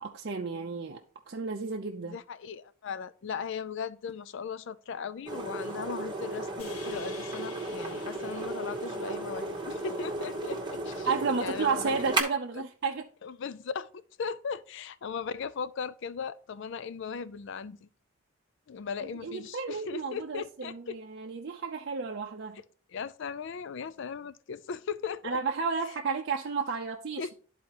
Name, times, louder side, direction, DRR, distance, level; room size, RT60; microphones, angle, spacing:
voice 1, 0.0-2.2 11.1-13.1 19.0-22.6 25.2-27.3, right 5 dB, 50° right, 0.5 m, -32 dB
voice 2, 2.0-11.1 11.4-12.0 13.2-17.9 18.7-21.0 22.9-25.4 27.2-27.3, left 6 dB, 55° left, 0.4 m, -38 dB
sound 1, 5.3-12.2, right 2 dB, 20° right, 1.0 m, -34 dB
sound 2, 6.6-11.0, left 4 dB, 80° left, 1.5 m, -50 dB
12.0 x 4.1 x 2.9 m
head